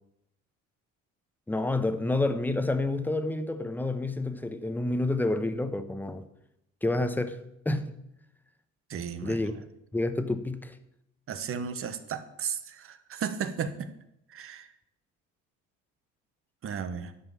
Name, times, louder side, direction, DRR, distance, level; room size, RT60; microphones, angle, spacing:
voice 1, 1.5-6.2 6.8-7.4 7.6-7.9 9.2-9.5 9.9-10.8, left 2 dB, 5° left, 0.9 m, -29 dB
voice 2, 8.9-9.4 11.3-13.9 14.3-14.7 16.6-17.1, right 7 dB, 45° right, 1.1 m, -34 dB
11.5 x 5.3 x 7.2 m
cardioid pair, 100°, 30 cm